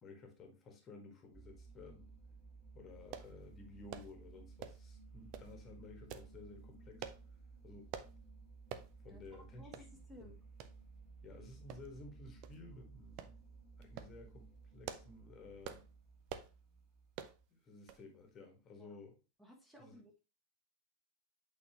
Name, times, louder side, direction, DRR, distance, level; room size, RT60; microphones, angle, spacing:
voice 1, 0.0-2.1 2.7-7.1 7.6-7.9 9.0-9.8 10.2-10.3 11.2-13.4 13.8-15.8 17.5-19.1 19.8-19.9, left 3 dB, 25° left, 3 dB, 1.6 m, -54 dB
sound 1, 1.3-17.4, right 4 dB, 25° right, 3.6 m, -57 dB
sound 2, 3.1-3.3 3.9-4.1 4.6-4.9 5.3-5.5 6.1-6.3 7.0-7.2 7.9-8.1 8.7-8.9 9.3-9.4 9.7-9.9 10.6-10.7 11.7-12.1 12.4-12.6 13.2-13.4 13.8-14.1 14.6-15.2 15.6-15.9 16.3-16.5 17.1-17.4 17.9-18.1 18.4-18.5, right 9 dB, 40° right, 0.6 m, -47 dB
voice 2, 9.0-10.4 18.8-19.0 19.4-20.2, left 1 dB, 5° right, 1 dB, 1.6 m, -58 dB
8.4 x 4.2 x 2.9 m, 0.29 s
figure-of-eight pair, 90°, 0 cm